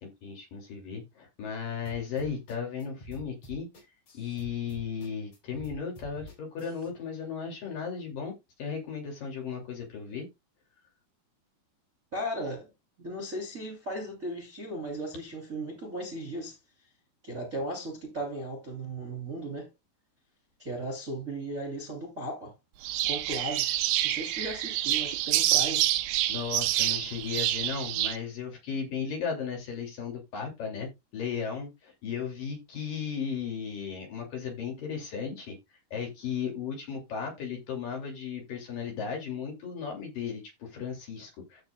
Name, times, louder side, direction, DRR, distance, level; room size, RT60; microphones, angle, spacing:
voice 1, 0.0-3.7 4.1-8.3 8.6-10.3 26.3-35.6 35.9-41.6, left 6 dB, 50° left, 3.8 m, -35 dB
sound 1, 1.9-6.9, equal, 35° left, 5.6 m, -47 dB
voice 2, 12.1-12.7 13.0-16.6 17.2-19.7 20.6-22.5 23.1-23.7 24.0-25.8, right 1 dB, 20° right, 2.4 m, -36 dB
sound 2, 22.8-28.2, right 14 dB, 90° right, 2.4 m, -27 dB
15.0 x 6.1 x 2.3 m
omnidirectional pair, 5.6 m